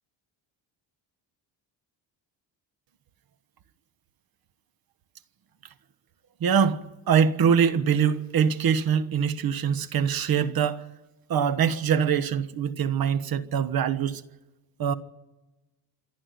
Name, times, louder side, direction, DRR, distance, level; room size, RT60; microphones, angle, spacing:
voice 1, 6.4-10.8 11.3-14.2 14.8-14.9, right 7 dB, 55° right, 1.3 m, -23 dB
27.0 x 11.0 x 9.4 m
cardioid pair, 125°, 44 cm